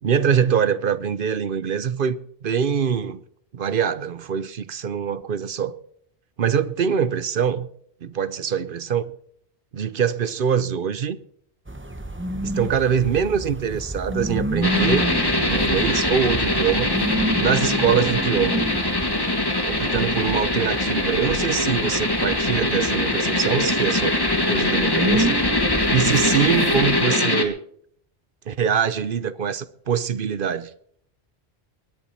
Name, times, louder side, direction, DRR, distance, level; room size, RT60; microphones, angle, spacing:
voice 1, 0.0-3.2 3.5-5.8 6.4-7.7 8.0-9.1 9.7-11.2 12.4-15.1 15.5-16.9 17.4-18.6 19.6-24.2 24.5-25.4 25.9-27.6 28.5-30.7, right 7 dB, 60° right, 0.9 m, -23 dB
sound 1, 11.7-27.0, right 1 dB, 10° right, 0.8 m, -30 dB
sound 2, 14.6-27.4, left 2 dB, 20° left, 1.5 m, -22 dB
21.5 x 10.5 x 4.3 m
omnidirectional pair, 1.1 m